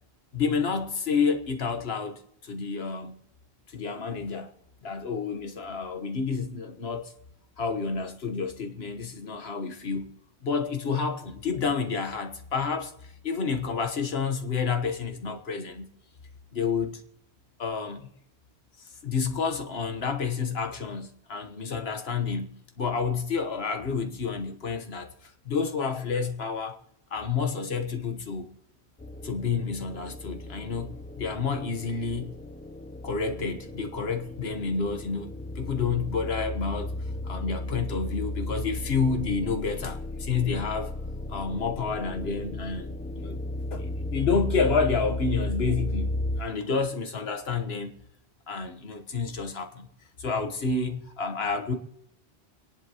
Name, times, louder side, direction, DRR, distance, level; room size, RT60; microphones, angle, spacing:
voice 1, 0.3-3.1 3.7-4.5 4.8-7.1 7.6-10.1 10.4-15.9 16.5-17.0 17.6-18.1 19.0-26.8 27.1-28.5 29.2-32.3 33.0-35.3 35.5-36.9 37.2-40.9 41.3-43.4 43.7-46.1 46.4-47.9 48.5-49.9 50.2-51.7, left 5 dB, 70° left, 1.5 m, -29 dB
sound 1, 29.0-46.4, left 1 dB, 15° left, 0.4 m, -35 dB
29.0 x 11.0 x 3.0 m
omnidirectional pair, 1.1 m